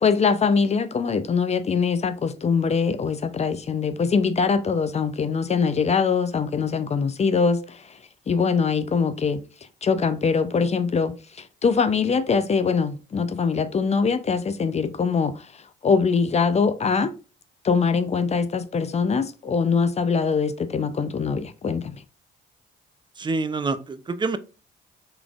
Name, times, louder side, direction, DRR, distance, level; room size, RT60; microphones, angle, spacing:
voice 1, 0.0-8.0 8.3-9.4 9.8-17.2 17.6-22.0, left 5 dB, 35° left, 0.5 m, -23 dB
voice 2, 23.2-24.4, right 3 dB, 25° right, 0.5 m, -26 dB
3.9 x 3.4 x 2.3 m
cardioid pair, 90°, 20 cm